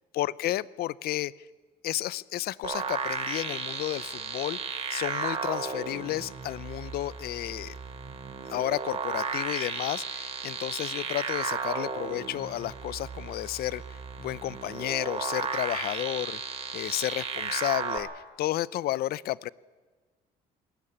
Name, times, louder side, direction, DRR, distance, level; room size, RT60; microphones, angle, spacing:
voice 1, 0.1-1.3 1.8-4.6 4.9-7.7 8.5-13.8 14.2-16.4 16.7-19.5, left 15 dB, 65° left, 21 dB, 0.6 m, -32 dB
sound 1, 2.6-18.0, right 5 dB, 40° right, 3.0 m, -34 dB
20.5 x 16.0 x 9.8 m, 1.4 s
cardioid pair, 110°, 17 cm